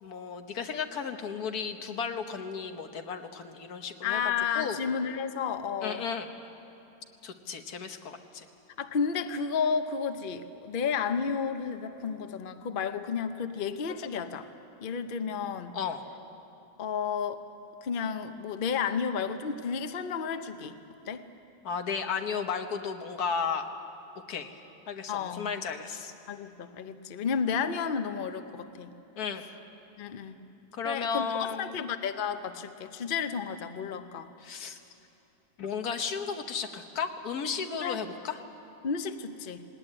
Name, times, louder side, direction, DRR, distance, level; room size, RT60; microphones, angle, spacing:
voice 1, 0.0-4.2 4.5-4.8 5.8-6.3 7.2-8.5 15.7-16.0 21.6-23.7 24.3-24.5 24.9-26.1 29.2-29.4 30.7-31.8 34.4-34.8 35.6-38.4, left 6 dB, 85° left, 6 dB, 1.7 m, -34 dB
voice 2, 4.0-6.1 8.8-14.5 14.8-15.8 16.8-17.4 17.8-20.7 21.1-21.3 25.1-25.5 26.3-28.9 30.0-30.4 30.8-34.3 37.8-38.0 38.8-39.7, left 6 dB, 45° left, 9 dB, 0.9 m, -32 dB
19.0 x 18.5 x 9.8 m, 3.0 s
omnidirectional pair, 1.6 m